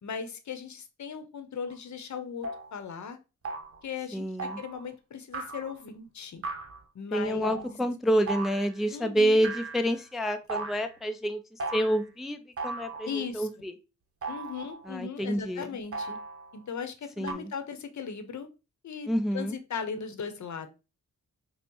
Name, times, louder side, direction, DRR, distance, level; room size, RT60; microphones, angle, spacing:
voice 1, 0.0-3.2 3.8-6.4 6.9-7.8 8.9-9.4 13.0-13.5 14.3-16.2 16.5-18.5 18.8-20.7, left 6 dB, 65° left, 0.7 m, -38 dB
sound 1, 1.7-1.8 2.4-2.7 3.4-3.8 4.4-4.8 5.3-5.8 6.4-6.8 7.4-7.7 8.3-8.8 9.4-10.1 10.5-11.0 11.6-12.1 12.6-13.3 14.2-14.9 15.9-16.6 17.3-17.4, right 3 dB, 45° right, 0.8 m, -37 dB
voice 2, 4.1-4.6 7.1-13.7 14.9-15.8 17.2-17.5 19.1-19.6, equal, ahead, 0.4 m, -28 dB
5.1 x 2.0 x 2.9 m
cardioid pair, 80°, 32 cm